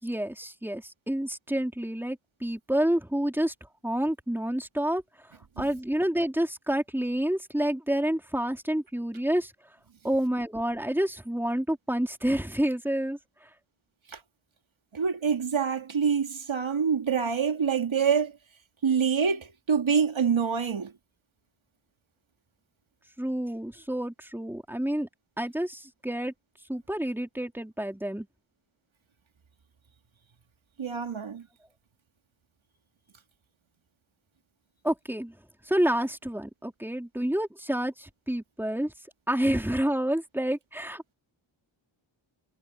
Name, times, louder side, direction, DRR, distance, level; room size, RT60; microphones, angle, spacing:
voice 1, 0.0-3.5 3.8-5.0 5.6-9.5 10.0-13.2 23.2-25.1 25.4-26.3 26.7-28.3 34.8-35.3 35.7-38.9 39.3-41.1, right 1 dB, 5° right, 3.8 m, -28 dB
voice 2, 14.9-18.3 18.8-20.9 30.8-31.5, right 6 dB, 70° right, 2.9 m, -26 dB
wide cardioid pair, 105°, 48 cm